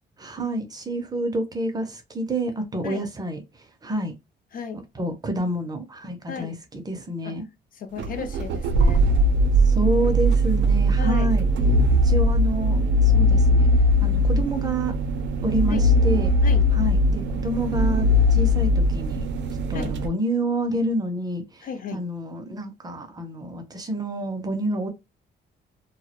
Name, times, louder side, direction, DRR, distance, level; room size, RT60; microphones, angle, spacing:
voice 1, 0.2-3.4 3.8-4.1 4.7-7.4 9.7-11.5 12.0-13.7 14.0-14.9 15.4-16.3 16.8-19.3 19.7-24.9, right 1 dB, 20° right, 0.4 m, -28 dB
voice 2, 4.5-4.8 6.3-6.6 7.2-7.4 7.7-9.1 11.0-11.3 15.7-15.9 16.4-16.6 19.7-19.9 21.6-22.1, left 6 dB, 50° left, 0.4 m, -34 dB
sound 1, 8.0-20.1, equal, 80° right, 0.4 m, -20 dB
2.2 x 2.0 x 2.8 m
cardioid pair, 155°, 18 cm